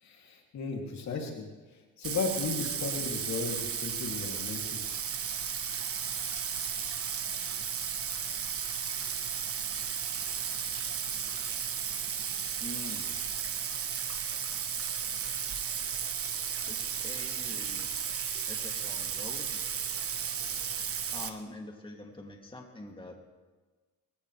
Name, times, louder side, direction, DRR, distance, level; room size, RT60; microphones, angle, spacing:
voice 1, 0.0-4.9, left 4 dB, 65° left, 0 dB, 3.0 m, -35 dB
Bathtub (filling or washing), 2.0-21.3, right 7 dB, 50° right, 1.3 m, -34 dB
voice 2, 12.6-13.1 16.7-17.9 18.5-19.6 21.1-23.1, left 2 dB, 15° left, 0 dB, 2.8 m, -45 dB
27.0 x 15.5 x 3.4 m, 1.3 s
cardioid pair, 90°, 30 cm